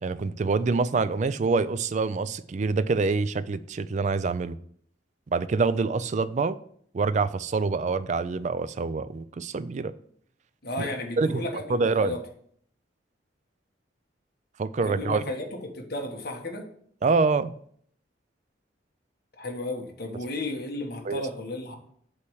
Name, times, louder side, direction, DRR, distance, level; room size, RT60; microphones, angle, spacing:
voice 1, 0.0-4.6 5.3-6.6 6.9-9.9 10.8-10.9 11.2-12.1 14.6-15.3 17.0-17.5 21.1-21.2, right 4 dB, 40° right, 14 dB, 0.3 m, -26 dB
voice 2, 10.6-12.2 14.8-16.7 19.4-21.7, left 2 dB, 55° left, 1 dB, 1.3 m, -34 dB
8.4 x 3.2 x 6.2 m, 0.63 s
head